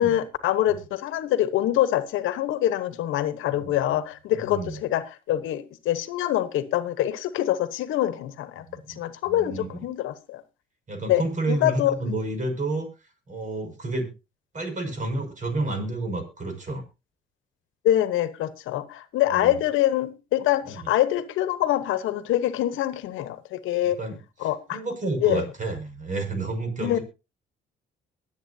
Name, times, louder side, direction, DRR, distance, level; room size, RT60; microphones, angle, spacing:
voice 1, 0.0-10.4 11.1-11.2 11.5-12.0 17.8-24.0 24.4-24.8 25.2-25.4 26.8-27.0, left 13 dB, 90° left, 1.1 m, -25 dB
voice 2, 4.4-4.8 8.7-9.8 10.9-12.9 13.3-14.1 14.5-16.8 19.3-19.6 20.7-20.9 23.8-24.2 24.7-27.0, right 2 dB, 40° right, 6.0 m, -30 dB
22.5 x 8.3 x 2.7 m
cardioid pair, 90°, 20 cm